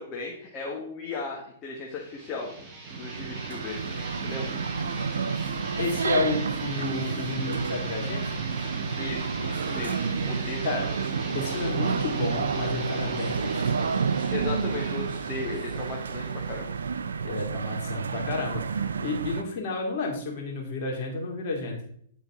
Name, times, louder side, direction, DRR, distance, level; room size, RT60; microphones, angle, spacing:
voice 1, 0.0-2.6 2.9-4.6 9.0-10.7 14.3-16.7, left 4 dB, 30° left, -1 dB, 1.1 m, -36 dB
sound 1, 1.9-17.3, right 3 dB, 25° right, 1.8 m, -39 dB
sound 2, 2.9-19.4, right 5 dB, 90° right, 0.4 m, -30 dB
voice 2, 5.8-8.2 10.6-10.9 11.3-13.7 17.2-21.8, left 3 dB, 50° left, -1 dB, 2.2 m, -31 dB
8.8 x 3.9 x 3.6 m, 0.65 s
hypercardioid pair, 130°, 0 cm